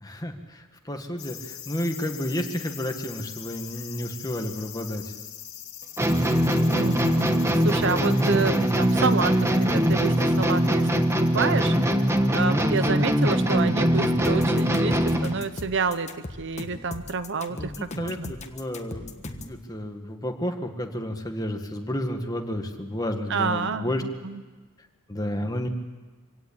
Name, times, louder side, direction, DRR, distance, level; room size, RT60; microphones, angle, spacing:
voice 1, 0.0-5.0 17.5-24.0 25.1-25.7, left 1 dB, 20° left, 4 dB, 1.8 m, -31 dB
sound 1, 1.2-15.3 15.6-15.7, left 11 dB, 55° left, 3.3 m, -43 dB
sound 2, 6.0-15.4, equal, 15° right, 1.3 m, -22 dB
voice 2, 6.7-10.9 11.2-11.8 12.3-18.3 23.3-24.4, right 4 dB, 60° right, 12 dB, 0.9 m, -28 dB
sound 3, 14.2-19.6, left 2 dB, 35° left, 1.4 m, -38 dB
25.0 x 17.5 x 8.8 m, 1.3 s
head